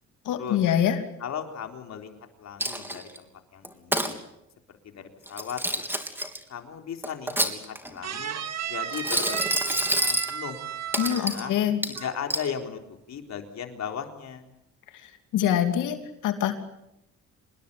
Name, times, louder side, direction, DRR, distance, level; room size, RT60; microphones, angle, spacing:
voice 1, 0.2-1.0 11.0-11.8 15.3-16.6, left 10 dB, 85° left, 7 dB, 3.0 m, -24 dB
voice 2, 1.2-2.1 2.4-4.2 4.8-6.1 6.5-8.3 8.6-10.6 11.0-11.5 11.9-14.5, left 7 dB, 60° left, 4 dB, 4.0 m, -37 dB
Coin (dropping), 2.6-3.2 3.6-4.1 5.3-6.4 7.0-8.0 8.9-10.3 10.9-11.4 11.8-12.5, right 1 dB, 5° right, 3.4 m, -27 dB
sound 1, 8.0-11.7 11.9-12.3, right 9 dB, 60° right, 2.5 m, -34 dB
26.5 x 21.0 x 8.6 m, 0.85 s
cardioid pair, 90°, 30 cm